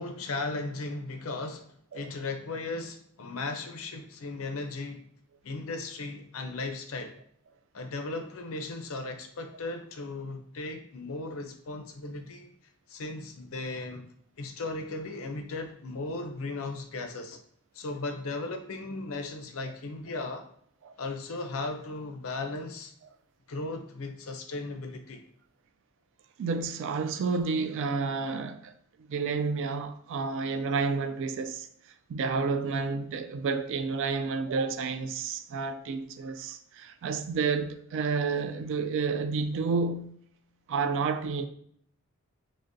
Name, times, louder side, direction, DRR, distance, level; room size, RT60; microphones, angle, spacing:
voice 1, 0.0-5.0 5.4-7.1 7.7-12.5 12.9-17.4 17.7-20.5 21.0-22.9 23.5-25.2, left 3 dB, 65° left, 0.5 m, -36 dB
voice 2, 26.4-28.7 29.1-31.7 32.1-40.1 40.7-41.5, right 4 dB, 60° right, 0.3 m, -30 dB
6.2 x 2.1 x 2.6 m
head